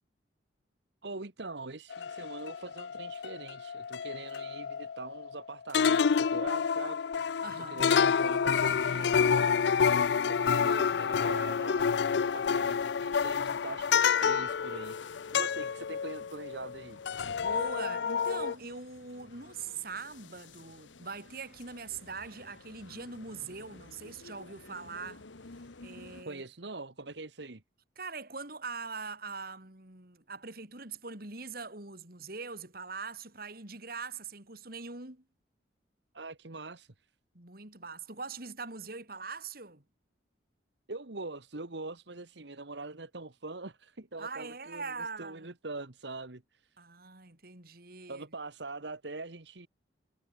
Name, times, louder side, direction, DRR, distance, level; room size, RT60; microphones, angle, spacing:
voice 1, 1.0-7.0 7.6-15.0 15.3-17.0 26.2-27.6 36.1-37.1 40.9-46.8 48.1-49.7, right 3 dB, 70° right, 1.6 m, -43 dB
sound 1, 1.9-5.4 5.7-16.8 17.0-18.5, left 6 dB, 65° left, 0.4 m, -29 dB
voice 2, 7.4-7.8 17.4-25.2 25.8-26.4 28.0-35.2 37.3-39.8 44.2-45.5 46.8-48.3, right 4 dB, 55° right, 3.5 m, -42 dB
sound 2, 12.1-26.2, left 4 dB, 90° left, 1.3 m, -53 dB
head